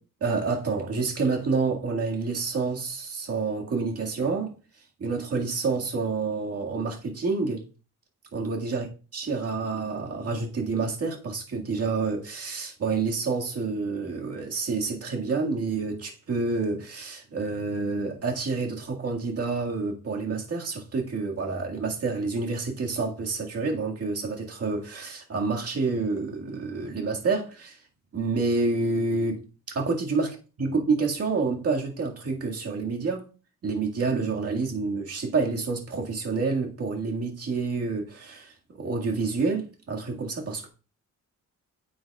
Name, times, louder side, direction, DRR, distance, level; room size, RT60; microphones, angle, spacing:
voice 1, 0.2-4.5 5.0-7.6 8.3-8.8 9.1-27.8 28.1-29.4 29.7-30.3 30.6-33.2 33.6-40.7, right 4 dB, 50° right, 2.0 m, -28 dB
9.4 x 7.7 x 2.4 m
wide cardioid pair, 135°, 31 cm